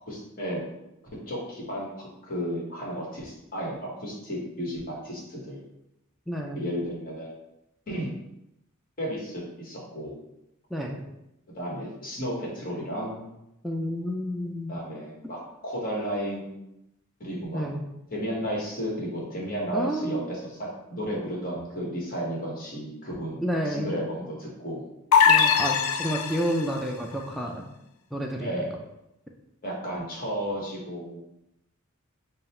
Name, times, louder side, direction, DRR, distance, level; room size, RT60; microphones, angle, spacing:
voice 1, 0.1-0.6 1.3-5.6 6.5-7.3 7.9-8.1 9.0-10.1 11.5-13.3 14.7-16.6 17.2-17.6 18.1-24.9 28.4-28.7 29.6-31.2, equal, 45° left, -3 dB, 1.3 m, -33 dB
voice 2, 6.3-6.7 10.7-11.1 13.6-14.8 17.5-17.8 19.7-20.2 23.4-24.0 25.2-27.7 28.1-28.5, equal, ahead, -1 dB, 0.3 m, -30 dB
sound 1, 25.1-26.7, left 7 dB, 85° left, 0.4 m, -21 dB
3.8 x 2.1 x 4.2 m, 0.86 s
head